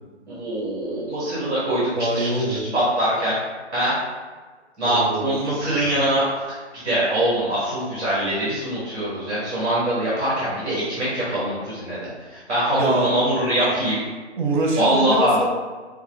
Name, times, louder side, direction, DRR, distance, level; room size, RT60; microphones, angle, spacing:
voice 1, 0.3-1.8 2.1-3.3 3.7-4.0 4.8-6.6 6.8-14.0 14.8-15.3, right 1 dB, 10° right, -10 dB, 1.1 m, -23 dB
voice 2, 1.9-2.6 4.8-5.3 12.8-13.3 14.4-15.5, right 1 dB, 45° right, 1 dB, 0.8 m, -24 dB
4.5 x 2.3 x 3.4 m, 1.4 s
figure-of-eight pair, 140°, 35 cm